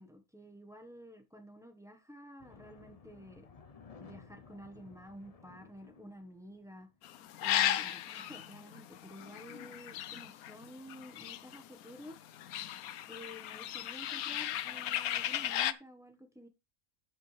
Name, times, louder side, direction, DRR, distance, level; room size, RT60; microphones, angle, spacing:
voice 1, 0.0-3.5 4.0-6.9 7.4-12.2 13.1-16.5, equal, ahead, 1.1 m, -51 dB
sound 1, 2.4-6.9, left 5 dB, 35° left, 0.6 m, -56 dB
sound 2, 7.0-11.8 12.1-15.7, left 12 dB, 75° left, 1.1 m, -35 dB
13.0 x 7.5 x 3.3 m
omnidirectional pair, 1.6 m